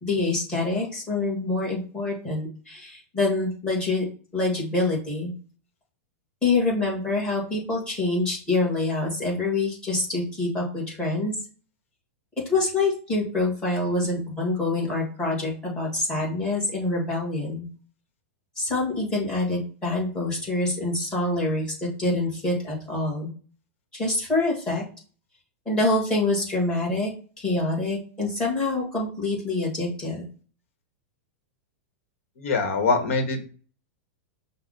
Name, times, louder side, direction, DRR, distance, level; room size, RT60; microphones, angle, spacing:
voice 1, 0.0-4.1 4.3-5.3 6.4-11.3 12.4-17.7 18.6-23.3 23.9-24.8 25.6-27.1 27.4-30.2, left 2 dB, 10° left, -4 dB, 1.4 m, -26 dB
voice 2, 32.4-33.4, left 4 dB, 70° left, 5 dB, 1.1 m, -23 dB
5.5 x 2.1 x 3.7 m, 0.41 s
supercardioid pair, 170°, 7 cm